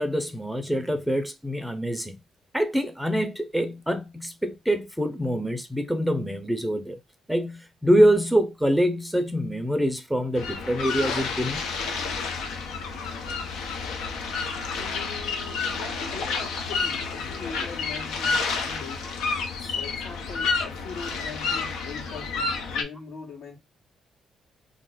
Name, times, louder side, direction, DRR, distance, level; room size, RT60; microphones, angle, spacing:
voice 1, 0.0-2.2 2.5-7.0 7.3-11.6 15.2-15.8 19.0-19.1 19.6-19.8, equal, ahead, 0.5 m, -25 dB
sound 1, 10.4-22.8, left 4 dB, 85° left, 0.6 m, -30 dB
voice 2, 14.8-19.2 19.7-23.6, left 5 dB, 70° left, 1.3 m, -41 dB
2.4 x 2.0 x 3.8 m
cardioid pair, 90°, 0 cm